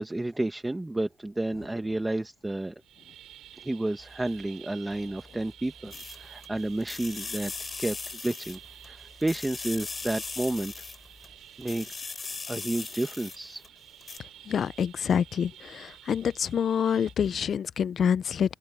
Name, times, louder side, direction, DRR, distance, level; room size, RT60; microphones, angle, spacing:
voice 1, 0.0-2.7 3.5-8.0 8.2-8.6 8.9-10.7 11.6-11.9 12.5-13.6, right 2 dB, 10° right, 1.2 m, -31 dB
sound 1, 2.8-17.2, right 12 dB, 80° right, 6.8 m, -51 dB
sound 2, 4.0-4.5 4.9-8.2 8.4-11.4, left 1 dB, 10° left, 7.9 m, -56 dB
sound 3, 5.9-6.5 6.8-8.9 9.2-11.3 11.6-13.7 14.0-14.2, left 4 dB, 35° left, 3.1 m, -38 dB
voice 2, 14.5-18.5, left 8 dB, 55° left, 0.4 m, -27 dB
cardioid pair, 90°, 0 cm